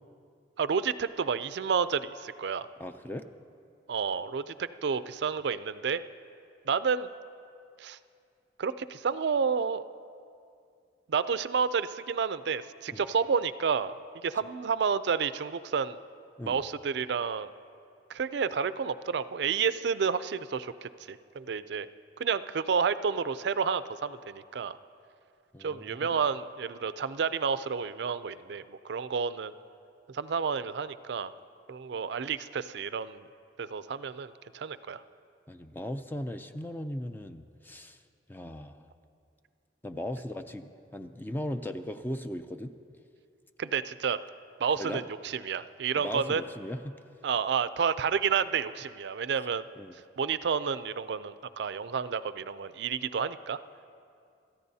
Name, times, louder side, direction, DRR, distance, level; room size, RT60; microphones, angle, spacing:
voice 1, 0.6-2.7 3.9-6.0 6.7-7.1 7.8-8.0 8.6-9.8 11.1-16.0 16.4-17.5 18.1-21.9 22.2-24.8 25.6-29.5 30.1-31.3 31.7-33.3 33.6-35.0 43.6-44.2 44.6-46.4 47.2-49.7 50.2-53.6, right 6 dB, 65° right, 14 dB, 0.4 m, -30 dB
voice 2, 2.8-3.3 12.9-13.0 16.4-16.6 25.5-26.2 35.5-38.0 38.3-38.9 39.8-42.7 44.8-45.0 45.9-47.0 49.8-49.9, left 1 dB, 10° left, 8 dB, 0.4 m, -38 dB
27.0 x 14.0 x 2.8 m, 2.4 s
head